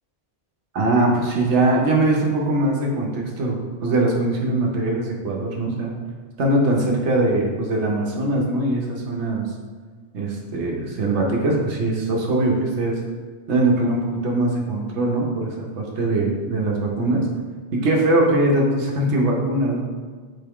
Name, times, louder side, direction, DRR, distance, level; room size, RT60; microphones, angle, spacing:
voice 1, 0.7-5.9 6.4-9.4 10.1-13.0 13.5-17.3 17.7-19.8, right 2 dB, 75° right, -1 dB, 1.1 m, -21 dB
3.7 x 3.4 x 3.5 m, 1.5 s
omnidirectional pair, 1.2 m